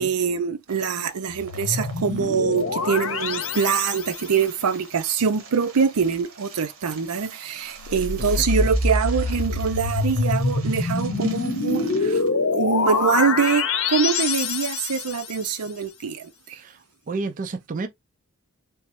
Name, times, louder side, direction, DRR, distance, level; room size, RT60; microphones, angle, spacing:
voice 1, 0.0-12.3 12.5-16.6, right 6 dB, 85° right, 0.5 m, -24 dB
sound 1, 0.7-12.3, right 4 dB, 60° right, 1.1 m, -45 dB
sound 2, 1.3-4.4 7.7-15.4, left 3 dB, 65° left, 0.7 m, -25 dB
voice 2, 8.2-8.7 16.6-16.8 17.1-17.9, right 3 dB, 35° right, 0.4 m, -31 dB
3.4 x 3.0 x 2.9 m
head